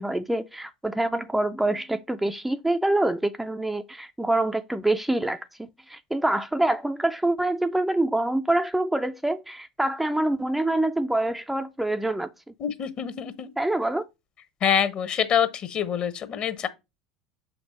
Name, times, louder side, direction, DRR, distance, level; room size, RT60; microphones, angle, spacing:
voice 1, 0.0-12.3 13.6-14.1, right 1 dB, 5° right, 0.4 m, -26 dB
voice 2, 12.6-13.5 14.6-16.7, left 8 dB, 40° left, 1.1 m, -25 dB
6.8 x 5.3 x 3.0 m
figure-of-eight pair, 75°, 3 cm